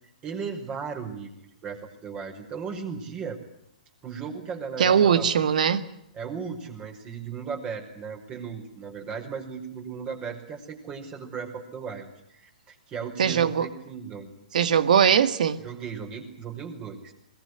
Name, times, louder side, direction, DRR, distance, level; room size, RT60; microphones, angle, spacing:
voice 1, 0.2-3.4 4.0-5.2 6.1-14.3 15.6-17.1, right 6 dB, 25° right, 5.5 m, -36 dB
voice 2, 4.8-5.8 13.2-13.7 14.5-15.6, right 8 dB, 65° right, 2.0 m, -20 dB
22.0 x 21.0 x 9.9 m
hypercardioid pair, 125°, 4 cm